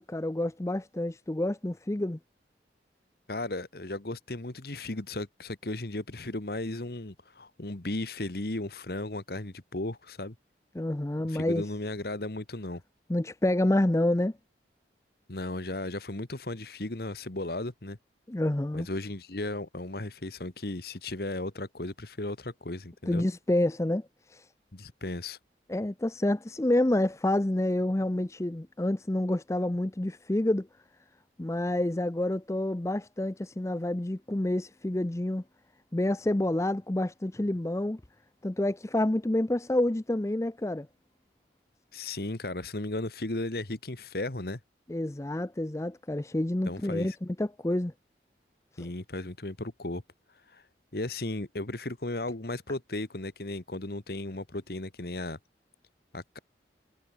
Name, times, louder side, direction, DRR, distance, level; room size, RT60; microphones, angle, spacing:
voice 1, 0.0-2.2 10.7-11.7 13.1-14.3 18.3-18.9 23.1-24.5 25.7-30.7 31.4-35.4 35.9-38.0 38.4-40.9 44.9-47.9 48.7-48.9, left 1 dB, 15° left, 0.5 m, -28 dB
voice 2, 3.3-10.3 11.3-12.8 15.3-18.0 18.7-23.2 24.7-25.4 41.9-44.6 46.7-47.2 48.8-50.0 50.5-50.6 50.9-55.4 56.1-56.4, left 2 dB, 60° left, 1.6 m, -35 dB
head